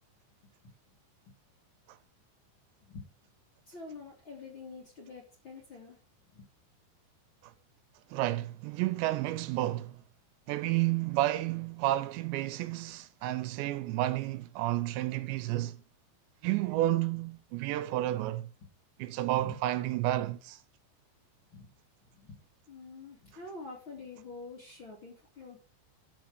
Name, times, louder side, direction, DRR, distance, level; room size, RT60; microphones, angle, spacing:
voice 1, 3.7-6.0 6.3-6.5 19.3-19.6 21.5-21.7 22.1-22.4 22.7-25.6, left 3 dB, 35° left, 2.2 m, -46 dB
voice 2, 8.1-10.0 10.5-15.8 16.4-18.5 19.0-20.6, right 15 dB, 80° right, 2.8 m, -31 dB
12.5 x 6.5 x 4.8 m
omnidirectional pair, 5.3 m